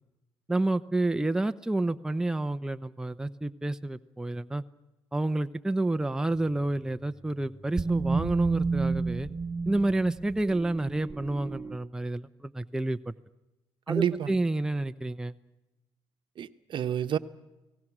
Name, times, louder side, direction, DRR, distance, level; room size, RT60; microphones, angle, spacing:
voice 1, 0.5-4.6 5.1-9.3 9.7-13.1 13.9-15.3, right 2 dB, 5° right, 0.7 m, -29 dB
sound 1, 6.5-11.8, right 4 dB, 25° right, 1.2 m, -32 dB
voice 2, 13.9-14.4 16.4-17.2, right 9 dB, 55° right, 1.1 m, -29 dB
29.5 x 18.5 x 6.2 m
cardioid pair, 85°, 10 cm